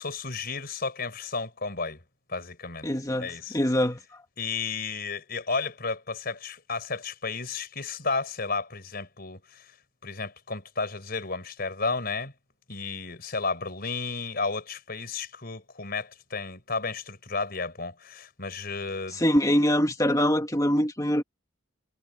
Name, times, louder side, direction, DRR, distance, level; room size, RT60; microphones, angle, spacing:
voice 1, 0.0-2.0 2.3-2.9 3.2-3.6 4.4-9.7 10.0-12.3 12.7-19.2, left 4 dB, 50° left, 4.7 m, -33 dB
voice 2, 2.8-4.0 19.2-21.2, equal, 15° left, 1.9 m, -24 dB
head